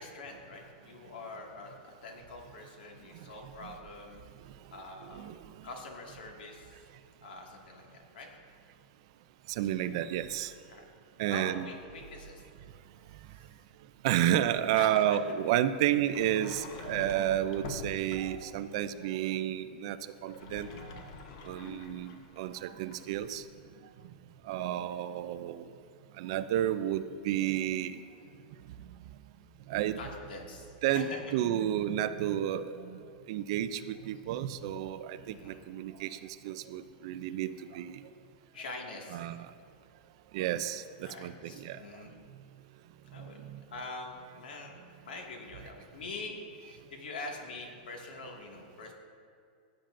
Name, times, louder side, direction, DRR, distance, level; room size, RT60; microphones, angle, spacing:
voice 1, 0.0-4.2 4.7-5.4 5.6-6.8 7.2-8.3 10.7-10.8 11.3-12.4 14.7-15.0 21.2-21.5 30.0-31.2 35.2-35.6 38.5-39.2 41.0-42.2 43.0-43.4 43.7-44.7 45.0-48.9, left 3 dB, 80° left, 1 dB, 1.9 m, -44 dB
voice 2, 5.1-5.4 9.5-10.5 11.2-11.7 14.0-21.0 21.5-23.4 24.4-25.7 26.2-28.0 29.7-30.0 30.8-38.0 39.1-39.5 40.3-41.8 43.5-43.6, right 11 dB, 35° right, 12 dB, 0.3 m, -31 dB
Sliding door, 16.0-18.5 20.2-23.3, left 3 dB, 40° left, 0.7 m, -46 dB
15.5 x 8.8 x 2.5 m, 2.3 s
supercardioid pair, 180°, 5 cm